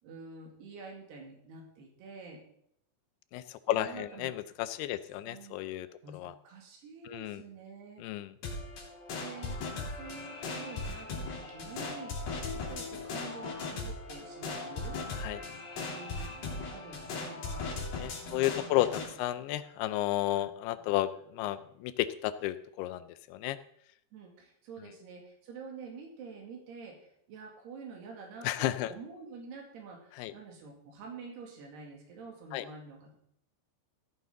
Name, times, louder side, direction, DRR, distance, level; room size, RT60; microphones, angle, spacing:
voice 1, 0.0-2.4 3.7-4.3 5.3-5.6 6.0-6.2 6.4-8.0 9.2-9.6 9.9-12.2 12.5-15.0 15.8-17.6 18.2-19.0 20.3-20.4 20.8-20.9 24.1-33.2, right 4 dB, 80° right, 0 dB, 4.3 m, -47 dB
voice 2, 3.3-5.9 6.1-6.3 7.1-7.4 8.0-8.3 15.2-15.4 18.0-23.6 24.8-24.9 28.4-28.9 30.2-30.3 32.5-32.7, left 14 dB, 80° left, 13 dB, 2.6 m, -32 dB
sound 1, 8.4-19.1, left 3 dB, 60° left, 4.3 m, -38 dB
15.0 x 9.4 x 3.8 m, 0.70 s
omnidirectional pair, 4.7 m